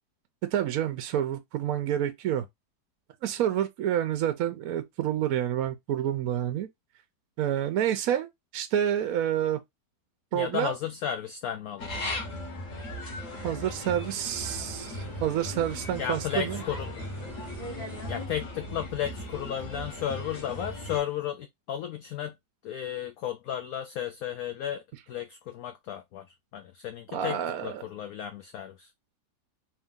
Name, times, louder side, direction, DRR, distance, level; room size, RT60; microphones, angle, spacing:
voice 1, 0.5-2.4 3.2-6.7 7.4-8.3 8.5-9.6 10.3-10.7 13.4-16.6 27.1-27.8, right 10 dB, 70° right, 0.9 m, -28 dB
voice 2, 10.3-12.1 16.0-17.0 18.1-22.3 22.6-26.3 26.5-28.9, left 10 dB, 70° left, 0.9 m, -34 dB
sound 1, 11.8-21.0, left 1 dB, 50° left, 1.5 m, -38 dB
sound 2, 13.2-18.3, left 1 dB, 20° left, 2.0 m, -44 dB
3.7 x 2.8 x 3.6 m
omnidirectional pair, 1.9 m